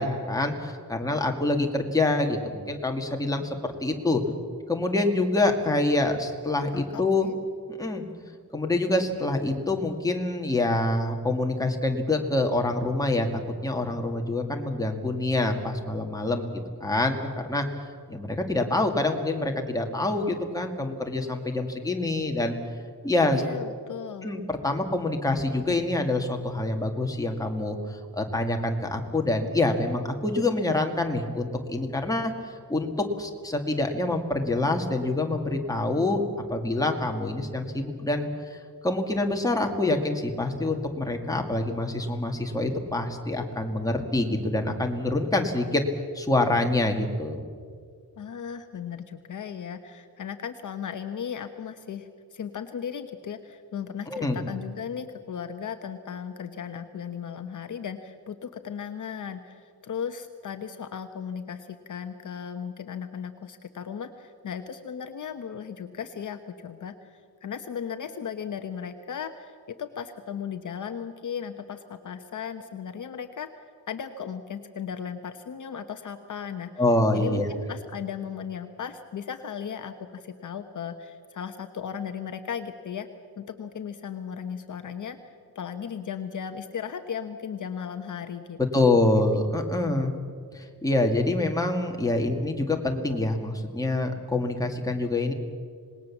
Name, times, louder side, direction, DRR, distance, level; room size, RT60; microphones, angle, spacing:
voice 1, 0.0-4.2 4.7-7.3 7.8-8.0 8.5-17.7 18.1-22.6 23.0-23.4 24.2-32.3 32.7-36.2 36.5-38.3 38.8-45.8 46.1-47.4 54.1-54.4 76.8-77.5 88.7-90.1 90.5-95.3, left 2 dB, 10° left, 2 dB, 2.0 m, -26 dB
voice 2, 6.7-7.4 23.3-24.3 48.2-73.5 73.9-76.7 77.1-83.1 83.4-89.1, left 7 dB, 50° left, 7 dB, 1.0 m, -36 dB
26.5 x 19.5 x 7.2 m, 2.1 s
wide cardioid pair, 175°, 39 cm